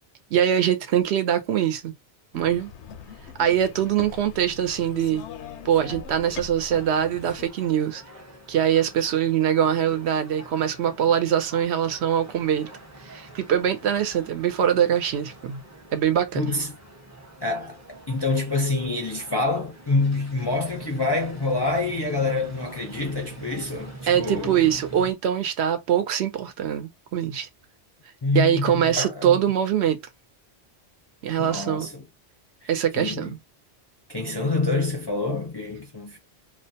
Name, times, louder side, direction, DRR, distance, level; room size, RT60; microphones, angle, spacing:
voice 1, 0.3-1.9 2.3-2.7 3.4-5.2 5.6-8.0 8.5-12.7 13.1-15.6 15.9-16.5 24.1-27.5 28.3-30.0 31.2-31.9 32.7-33.4, right 9 dB, 75° right, 0.8 m, -23 dB
sound 1, 2.3-7.5, left 7 dB, 85° left, 0.9 m, -41 dB
sound 2, 6.7-25.1, right 1 dB, 20° right, 0.5 m, -44 dB
voice 2, 16.3-16.7 17.4-17.8 18.1-24.7 28.2-29.4 31.4-32.0 32.6-33.3 34.1-36.2, left 3 dB, 35° left, 0.4 m, -27 dB
2.4 x 2.1 x 2.7 m
omnidirectional pair, 1.2 m